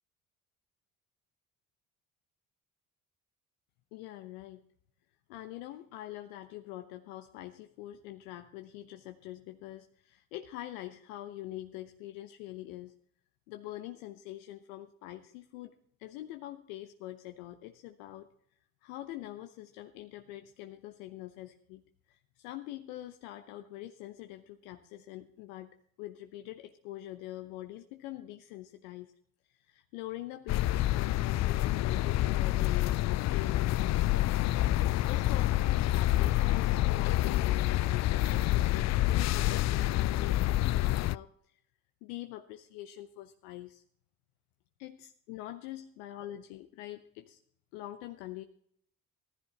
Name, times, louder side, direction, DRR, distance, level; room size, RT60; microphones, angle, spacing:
voice 1, 3.9-4.6 5.3-12.9 13.5-15.7 16.0-18.3 18.8-21.8 22.1-25.7 26.0-29.1 29.5-34.5 35.1-41.6 42.0-43.8 44.8-47.4 47.7-48.4, left 14 dB, 75° left, 7 dB, 0.8 m, -44 dB
sound 1, 30.5-41.2, left 15 dB, 45° left, 0.4 m, -27 dB
15.5 x 14.5 x 2.9 m, 0.65 s
hypercardioid pair, 50°, 41 cm